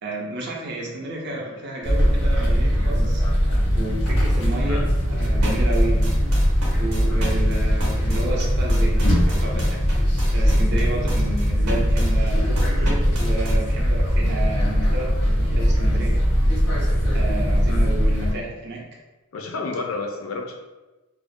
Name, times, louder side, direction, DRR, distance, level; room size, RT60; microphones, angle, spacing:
voice 1, 0.0-3.2 3.7-6.2 6.8-9.8 10.3-15.1 15.4-16.2 17.1-18.9, right 2 dB, 50° right, -1 dB, 0.5 m, -31 dB
sound 1, 1.8-18.3, equal, 85° left, 0.8 m, -20 dB
sound 2, 5.2-13.5, right 1 dB, 90° right, 0.7 m, -33 dB
voice 2, 17.7-18.0 19.3-20.6, left 3 dB, 65° left, 2 dB, 0.4 m, -31 dB
2.4 x 2.1 x 2.5 m, 1.1 s
head